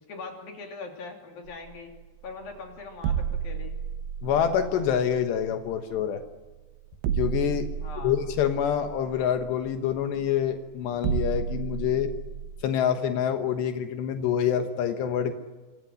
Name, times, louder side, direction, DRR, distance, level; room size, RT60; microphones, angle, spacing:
voice 1, 0.1-1.9 2.2-3.8 7.8-8.2, left 4 dB, 60° left, 2 dB, 4.7 m, -41 dB
sound 1, 1.5-12.6, right 8 dB, 90° right, 3.5 m, -33 dB
voice 2, 4.2-6.2 7.2-7.7 8.0-12.1 12.6-15.3, left 9 dB, 80° left, 7 dB, 3.4 m, -26 dB
27.5 x 26.5 x 6.5 m, 1.2 s
omnidirectional pair, 4.9 m